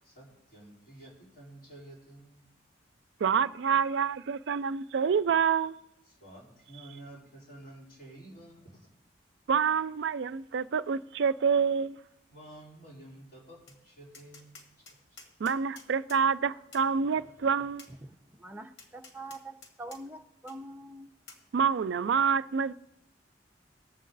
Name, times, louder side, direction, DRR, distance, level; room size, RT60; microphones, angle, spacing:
voice 1, 0.0-2.4 3.4-3.7 6.1-8.9 12.3-14.6 14.9-15.0, right 1 dB, 50° left, 4.2 m, -51 dB
voice 2, 3.2-5.8 9.5-12.0 15.4-17.9 21.5-22.7, right 6 dB, 75° right, 0.4 m, -27 dB
Tap, 13.7-13.8 14.1-16.2 16.7-16.9 17.8-17.9 18.8-20.0 20.5-20.6 21.3-21.4, left 4 dB, 80° left, 2.0 m, -51 dB
voice 3, 18.1-21.1, right 2 dB, 10° right, 0.6 m, -45 dB
19.5 x 7.4 x 3.9 m
head